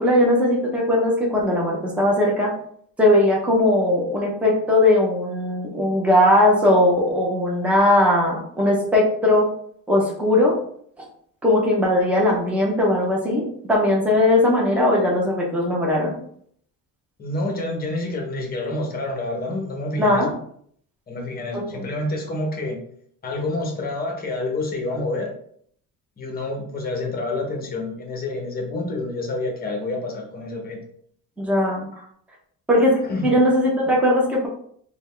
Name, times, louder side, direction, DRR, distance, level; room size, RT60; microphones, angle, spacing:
voice 1, 0.0-2.5 3.0-9.5 9.9-10.5 11.4-16.2 20.0-20.3 21.5-21.6 31.4-31.9 32.7-34.5, left 1 dB, 5° right, -3 dB, 0.7 m, -19 dB
voice 2, 17.2-20.2 21.1-22.8 23.2-25.3 26.2-30.8 31.9-32.1 33.0-33.3, left 2 dB, 25° left, 1 dB, 0.8 m, -28 dB
3.9 x 2.3 x 3.2 m, 0.63 s
cardioid pair, 150°, 36 cm